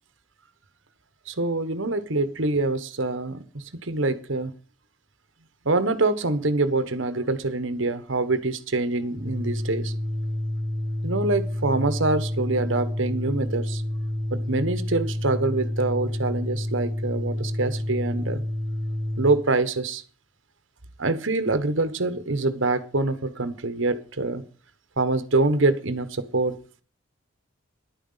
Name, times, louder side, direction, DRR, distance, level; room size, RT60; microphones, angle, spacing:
voice 1, 1.3-4.5 5.6-9.9 11.0-13.8 14.3-18.4 19.2-20.0 21.0-24.4 25.0-26.5, right 2 dB, 70° right, 1.3 m, -25 dB
Organ, 9.0-19.4, left 1 dB, 35° left, 6.9 m, -29 dB
11.0 x 9.3 x 5.7 m
head